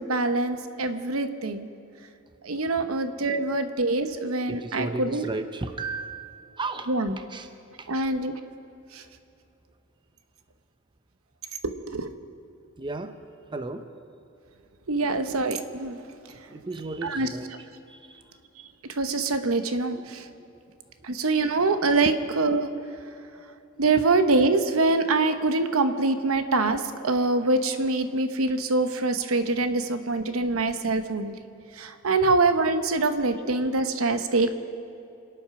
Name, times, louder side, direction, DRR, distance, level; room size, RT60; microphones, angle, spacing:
voice 1, 0.0-1.7 2.4-5.3 6.9-7.2 7.9-8.3 8.9-9.0 11.8-12.1 14.9-16.0 17.0-17.3 18.9-20.3 21.0-22.7 23.8-31.4 31.8-34.5, right 3 dB, 90° right, 9 dB, 1.0 m, -24 dB
voice 2, 4.5-6.9 7.3-7.5 7.8-7.9 12.8-13.2 13.5-13.9 16.5-17.5 17.9-18.2 19.9-20.0 20.4-20.5 22.0-22.2 23.9-24.0, right 3 dB, 25° right, 8 dB, 0.7 m, -34 dB
27.0 x 9.0 x 6.0 m, 2.8 s
head